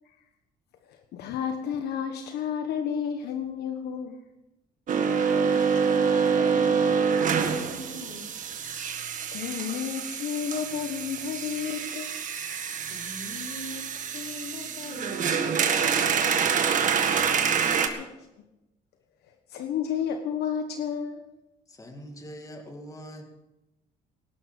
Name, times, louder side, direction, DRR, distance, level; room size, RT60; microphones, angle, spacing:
voice 1, 0.9-4.2 9.3-12.1 17.7-18.1 19.5-21.3, left 8 dB, 75° left, 6 dB, 1.3 m, -31 dB
voice 2, 4.9-8.3 12.9-16.2, left 4 dB, 55° left, 2 dB, 3.3 m, -41 dB
sound 1, 4.9-17.9, right 6 dB, 50° right, 1.8 m, -26 dB
voice 3, 21.7-23.3, equal, 20° left, 4 dB, 2.3 m, -43 dB
18.5 x 11.5 x 5.3 m, 0.96 s
cardioid pair, 110°, 17 cm